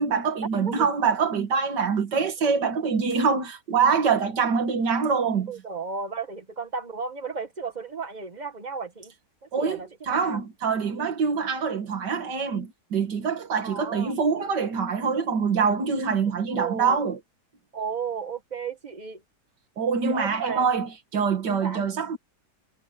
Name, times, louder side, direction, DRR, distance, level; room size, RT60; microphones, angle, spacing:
voice 1, 0.0-5.5 9.5-17.2 19.8-22.2, right 5 dB, 85° right, 2.4 m, -25 dB
voice 2, 5.5-9.1 9.4-10.4 13.6-14.1 16.5-17.0 17.7-19.2 20.0-20.7 21.6-21.8, right 5 dB, 25° right, 1.7 m, -34 dB
omnidirectional pair, 1.8 m